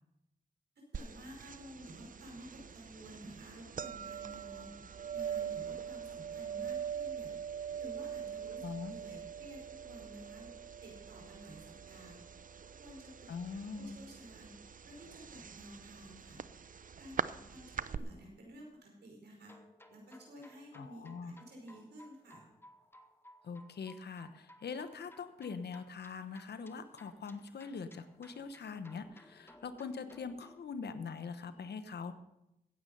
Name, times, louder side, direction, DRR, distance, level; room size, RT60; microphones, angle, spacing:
sound 1, 0.9-18.0, right 7 dB, 55° right, 0.6 m, -43 dB
voice 1, 0.9-4.7 5.1-7.3 7.7-10.5 10.8-12.2 12.8-14.5 14.8-16.4 17.0-19.5 19.9-22.5, right 1 dB, 80° right, -1 dB, 5.1 m, -52 dB
voice 2, 8.6-8.9 13.3-14.0 20.7-21.3 23.4-32.1, left 5 dB, 80° left, 11 dB, 1.1 m, -43 dB
sound 2, 19.4-30.6, left 1 dB, 15° left, 1.5 m, -60 dB
15.5 x 9.2 x 5.5 m, 0.87 s
cardioid pair, 45°, 17 cm